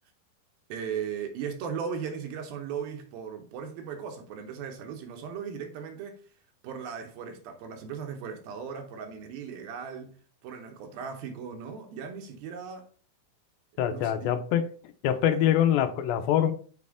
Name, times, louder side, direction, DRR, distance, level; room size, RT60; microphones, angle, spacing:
voice 1, 0.7-6.2 6.6-10.1 10.4-12.9 13.9-14.3, right 7 dB, 85° right, 2.9 m, -37 dB
voice 2, 13.8-14.6 15.0-16.5, left 10 dB, 85° left, 2.4 m, -24 dB
6.7 x 4.2 x 3.6 m
omnidirectional pair, 4.1 m